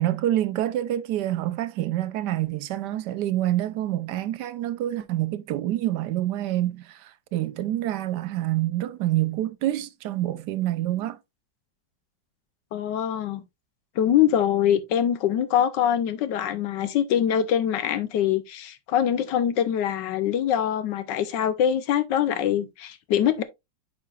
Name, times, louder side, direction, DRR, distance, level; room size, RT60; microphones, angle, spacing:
voice 1, 0.0-11.2, right 13 dB, 75° right, 1.1 m, -27 dB
voice 2, 12.7-13.4 14.0-23.4, left 10 dB, 70° left, 1.3 m, -24 dB
8.4 x 4.9 x 2.3 m
omnidirectional pair, 2.1 m